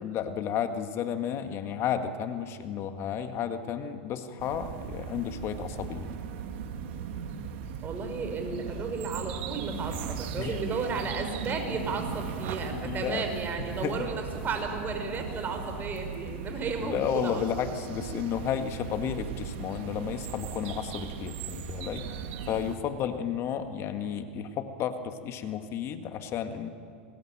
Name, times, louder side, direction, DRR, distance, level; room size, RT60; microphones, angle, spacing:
voice 1, 0.0-6.1 10.4-10.5 12.7-13.2 13.6-14.1 16.8-22.1 22.5-26.7, left 8 dB, 40° left, 8 dB, 1.8 m, -32 dB
sound 1, 4.4-22.8, right 7 dB, 65° right, 2.7 m, -38 dB
voice 2, 7.8-17.5, right 4 dB, 30° right, 5 dB, 5.4 m, -33 dB
28.5 x 20.5 x 9.0 m, 2.3 s
hypercardioid pair, 110°, 7 cm